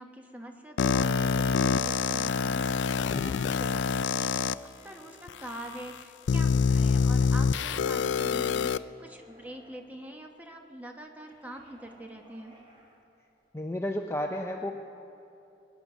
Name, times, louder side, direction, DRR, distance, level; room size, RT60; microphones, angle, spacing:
voice 1, 0.0-2.7 3.1-12.6, right 1 dB, 10° right, 3 dB, 1.0 m, -44 dB
sound 1, 0.8-4.5 5.3-5.4 6.3-8.8, left 5 dB, 80° left, 0.4 m, -26 dB
sound 2, 1.8-5.6 6.1-7.6 8.8-9.9 11.2-13.0, equal, 30° right, 1.9 m, -54 dB
voice 2, 13.5-14.7, left 1 dB, 15° left, 2 dB, 0.5 m, -32 dB
21.0 x 9.6 x 6.1 m, 3.0 s
head